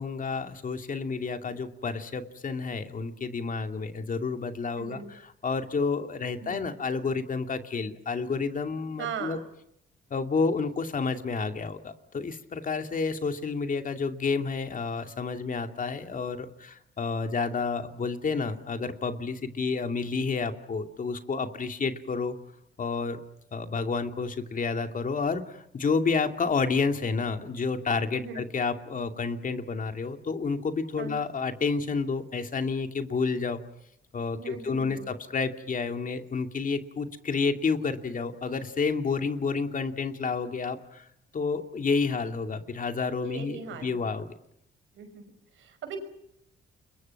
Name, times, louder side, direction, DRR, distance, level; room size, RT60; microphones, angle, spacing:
voice 1, 0.0-9.4 10.1-22.3 22.8-23.2 23.5-33.6 34.1-41.0 41.3-44.3, left 4 dB, 40° left, 6 dB, 2.6 m, -30 dB
voice 2, 4.8-5.1 6.4-6.6 9.0-9.4 28.1-28.5 31.0-31.2 34.4-35.1 43.2-44.0 44.9-46.0, right 7 dB, 75° right, 9 dB, 5.6 m, -39 dB
29.5 x 23.5 x 6.0 m, 0.76 s
cardioid pair, 90°, 20 cm